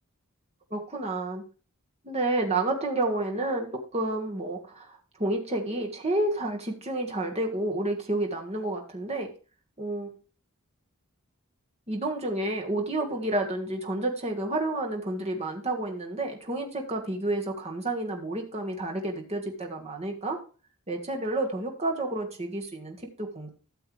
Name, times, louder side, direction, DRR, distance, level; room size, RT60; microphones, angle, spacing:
voice 1, 0.7-1.4 2.0-9.3 9.8-10.1 11.9-20.4 20.9-23.5, right 2 dB, 30° right, 2 dB, 1.6 m, -30 dB
13.0 x 7.0 x 3.2 m, 0.35 s
head